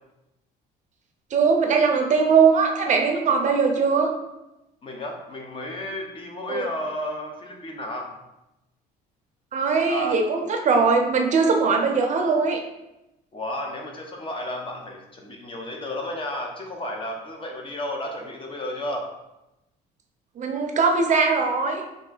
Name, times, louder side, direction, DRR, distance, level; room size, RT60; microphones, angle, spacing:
voice 1, 1.3-4.1 6.5-6.7 9.5-12.6 20.4-21.8, right 5 dB, 45° right, 3 dB, 0.6 m, -20 dB
voice 2, 4.8-8.1 9.9-10.2 13.3-19.1, left 1 dB, 30° left, 1 dB, 0.8 m, -32 dB
3.7 x 2.6 x 3.9 m, 0.93 s
cardioid pair, 110°, 17 cm